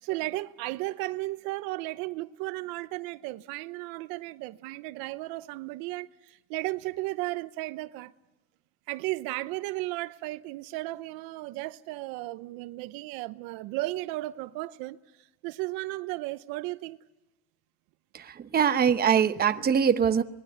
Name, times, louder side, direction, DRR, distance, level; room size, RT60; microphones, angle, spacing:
voice 1, 0.0-8.1 8.9-17.0, right 19 dB, 85° right, 0.9 m, -35 dB
voice 2, 18.1-20.2, right 7 dB, 25° right, 0.9 m, -23 dB
25.5 x 20.0 x 9.3 m
cardioid pair, 135°, 35 cm